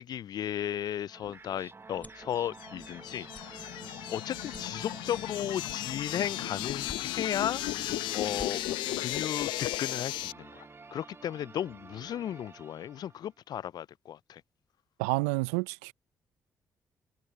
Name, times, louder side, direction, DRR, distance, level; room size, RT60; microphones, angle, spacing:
voice 1, 0.0-3.7 4.1-7.6 8.1-8.6 9.0-14.4, left 10 dB, 55° left, 0.3 m, -35 dB
sound 1, 1.0-2.3 2.8-3.0 3.3-3.5 4.0-4.1 4.5-5.3 5.6-6.3 6.8-7.4 7.9-8.0 8.2-8.5, left 2 dB, 20° left, 6.1 m, -49 dB
sound 2, 1.1-13.3, right 4 dB, 30° right, 1.4 m, -49 dB
sound 3, 2.3-10.3, left 17 dB, 75° left, 0.8 m, -35 dB
voice 2, 15.0-15.9, right 25 dB, 80° right, 0.6 m, -29 dB
hypercardioid pair, 40°, 8 cm